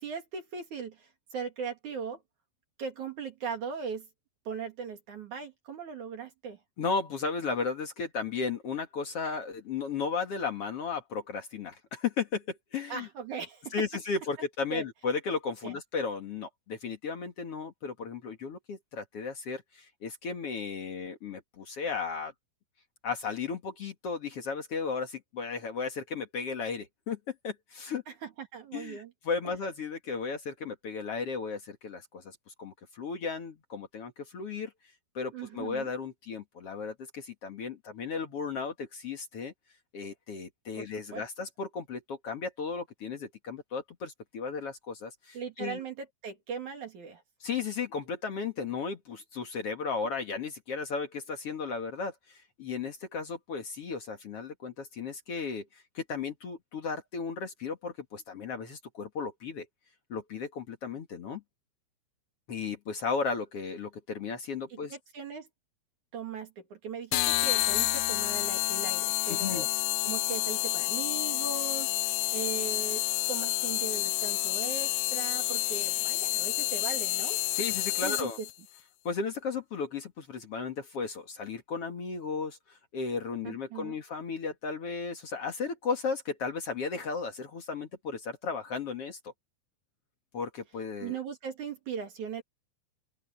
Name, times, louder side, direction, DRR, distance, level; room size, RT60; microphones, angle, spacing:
voice 1, 0.0-2.2 2.8-4.1 4.4-6.6 12.9-13.7 14.7-14.8 15.6-15.7 28.1-29.1 29.4-29.5 35.3-35.9 41.1-41.2 45.3-47.2 64.7-65.5 66.1-69.7 70.0-73.0 73.3-77.4 78.0-78.3 83.4-83.9 91.0-92.4, right 6 dB, 50° right, 2.8 m, -39 dB
voice 2, 6.8-13.1 13.7-22.3 23.0-28.0 28.7-34.7 35.1-39.5 39.9-45.8 47.4-59.6 60.1-61.4 62.5-65.0 69.3-69.7 77.5-78.4 79.0-89.3 90.3-91.2, left 5 dB, 60° left, 1.5 m, -35 dB
sound 1, 67.1-78.5, left 18 dB, 80° left, 2.9 m, -29 dB
open air
omnidirectional pair, 5.6 m